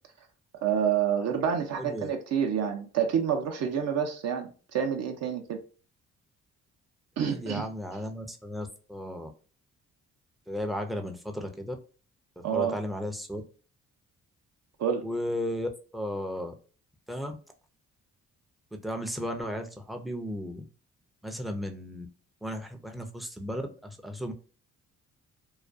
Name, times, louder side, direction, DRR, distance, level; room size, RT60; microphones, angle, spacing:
voice 1, 0.6-5.6 7.2-7.7 12.4-12.8 14.8-15.1, right 8 dB, 60° right, 0.5 m, -28 dB
voice 2, 1.8-2.1 7.3-9.3 10.5-11.8 12.4-13.4 15.0-16.5 17.1-17.3 18.7-20.7 21.2-22.1 22.4-24.3, equal, ahead, 0.4 m, -35 dB
2.3 x 2.2 x 2.4 m
cardioid pair, 90°, 30 cm